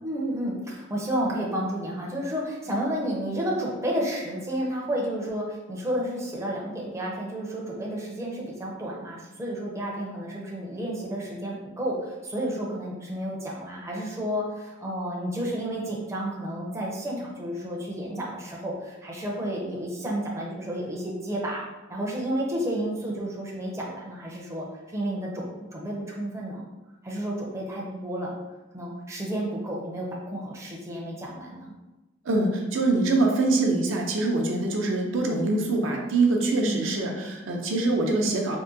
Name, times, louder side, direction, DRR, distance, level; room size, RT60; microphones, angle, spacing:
voice 1, 0.0-21.6 21.9-26.6 27.0-28.4 28.7-31.7 36.5-37.0, right 1 dB, 15° right, -3 dB, 0.5 m, -31 dB
voice 2, 32.2-38.6, right 2 dB, 75° right, 1 dB, 0.5 m, -24 dB
3.6 x 2.1 x 2.6 m, 1.1 s
head